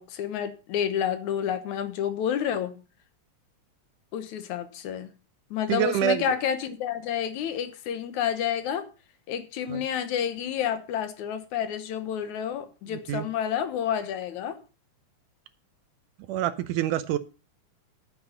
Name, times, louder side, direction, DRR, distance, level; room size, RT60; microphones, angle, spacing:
voice 1, 0.0-2.7 4.1-5.1 5.5-8.9 9.3-14.6, left 9 dB, 75° left, 2.5 m, -29 dB
voice 2, 5.7-6.3 9.7-9.9 12.9-13.3 16.3-17.2, right 12 dB, 85° right, 2.3 m, -27 dB
10.0 x 8.6 x 5.3 m
omnidirectional pair, 3.5 m